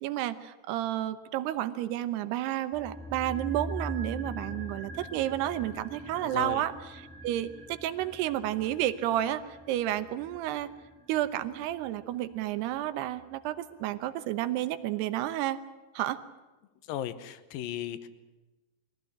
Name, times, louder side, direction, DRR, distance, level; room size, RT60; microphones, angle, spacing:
voice 1, 0.0-6.7 7.2-9.4 9.7-10.7 11.1-15.6 15.9-16.2, right 13 dB, 80° right, 12 dB, 3.0 m, -31 dB
sound 1, 2.7-13.0 13.2-13.3, right 1 dB, ahead, 0.8 m, -43 dB
voice 2, 6.2-6.6 16.9-18.1, left 11 dB, 70° left, 12 dB, 2.5 m, -36 dB
23.0 x 16.0 x 10.0 m, 1.1 s
omnidirectional pair, 4.7 m